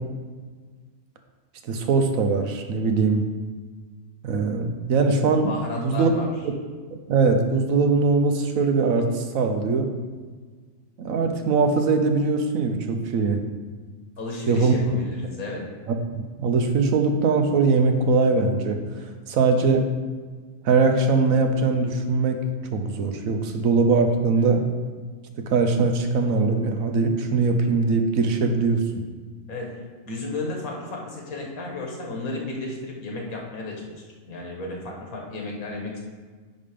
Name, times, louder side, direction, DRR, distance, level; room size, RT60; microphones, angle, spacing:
voice 1, 1.7-3.3 4.2-6.1 7.1-9.9 11.0-13.4 14.5-14.7 15.9-18.8 19.3-19.9 20.6-22.4 22.7-24.6 25.4-29.0, right 4 dB, 75° right, 5 dB, 1.2 m, -21 dB
voice 2, 5.5-6.3 14.2-15.6 24.4-24.5 29.5-29.8 30.1-33.8 34.2-36.0, left 2 dB, 85° left, -1 dB, 1.9 m, -33 dB
9.5 x 3.7 x 5.0 m, 1.5 s
omnidirectional pair, 1.5 m